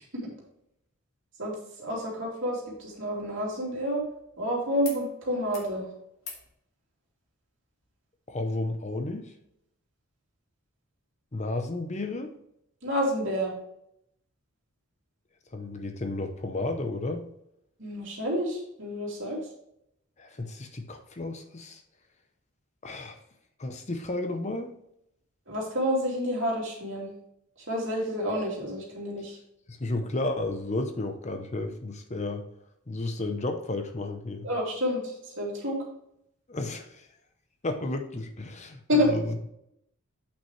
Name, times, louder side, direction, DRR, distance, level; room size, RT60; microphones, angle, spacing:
voice 1, 1.4-4.0 4.4-5.8 12.8-13.5 17.8-19.4 25.5-27.1 27.7-29.4 34.4-35.8 38.9-39.1, equal, 60° right, -3 dB, 2.9 m, -29 dB
sound 1, 2.6-4.4 4.8-5.0 5.3-5.7 6.2-6.5 7.8-7.9, left 5 dB, 70° left, 1.8 m, -46 dB
voice 2, 8.3-9.3 11.3-12.3 15.5-17.2 20.2-21.8 22.8-23.2 23.6-24.7 29.7-32.4 32.9-34.5 36.5-37.1 37.6-39.5, left 2 dB, 30° left, 6 dB, 0.7 m, -32 dB
8.3 x 6.1 x 3.2 m, 0.77 s
head